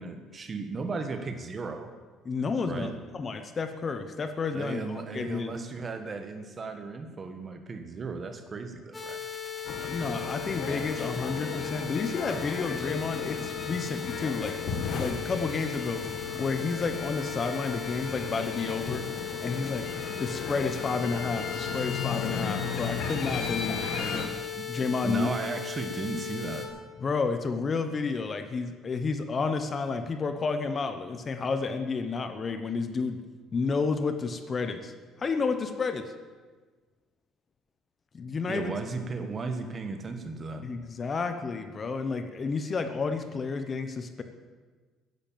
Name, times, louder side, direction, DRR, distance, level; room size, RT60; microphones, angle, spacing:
voice 1, 0.0-1.9 2.6-2.9 4.5-9.2 24.5-24.7 25.0-26.7 38.5-40.7, right 3 dB, 30° right, 7 dB, 1.5 m, -35 dB
voice 2, 2.2-5.5 9.8-14.6 15.0-16.0 16.4-19.1 19.4-19.9 20.2-24.3 24.7-25.3 27.0-33.2 33.5-34.9 35.2-36.1 38.1-38.7 40.6-44.2, left 4 dB, 30° left, 8 dB, 1.0 m, -31 dB
sound 1, 8.9-26.7, left 9 dB, 15° left, 2.2 m, -37 dB
sound 2, 9.6-24.3, left 5 dB, 55° left, 2.1 m, -35 dB
14.0 x 11.0 x 7.5 m, 1.4 s
cardioid pair, 140°, 0 cm